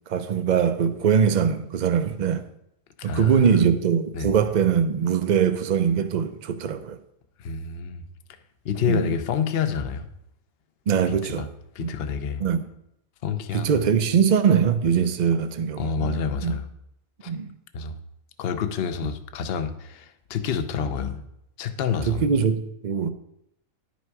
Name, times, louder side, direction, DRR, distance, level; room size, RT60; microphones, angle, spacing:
voice 1, 0.1-2.4 3.0-7.0 8.9-9.1 10.9-11.5 11.8-11.9 12.4-12.7 13.5-16.6 17.3-17.5 22.0-23.1, right 7 dB, 50° right, 0.5 m, -22 dB
voice 2, 3.0-3.5 4.1-4.3 7.4-8.0 8.6-10.1 11.1-11.5 11.7-12.4 13.2-13.7 15.8-16.7 17.2-17.3 17.7-18.0 18.4-21.3 21.6-22.2, left 6 dB, 55° left, 0.8 m, -28 dB
10.5 x 6.2 x 4.7 m
omnidirectional pair, 1.5 m